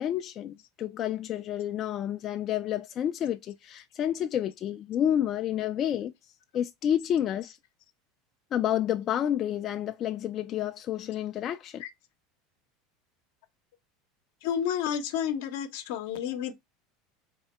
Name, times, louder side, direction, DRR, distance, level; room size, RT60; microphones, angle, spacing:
voice 1, 0.0-6.1 6.5-7.6 8.5-11.8, left 10 dB, 40° left, 0.3 m, -29 dB
voice 2, 14.4-16.6, left 9 dB, 75° left, 0.7 m, -31 dB
3.6 x 2.1 x 4.2 m
supercardioid pair, 115°, 0 cm